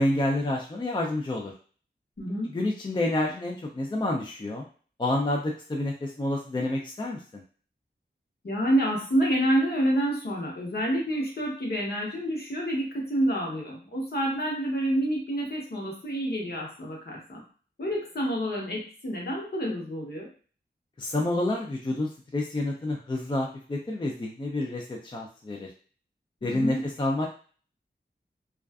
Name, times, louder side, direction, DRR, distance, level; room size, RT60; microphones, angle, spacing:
voice 1, 0.0-1.5 2.5-4.6 5.0-7.4 21.0-25.7 26.4-27.3, left 1 dB, 25° left, 0 dB, 0.4 m, -29 dB
voice 2, 2.2-2.5 8.4-17.4 17.8-20.3 26.4-26.8, right 1 dB, 60° left, -2 dB, 0.9 m, -28 dB
2.4 x 2.3 x 2.3 m, 0.41 s
wide cardioid pair, 70°, 18 cm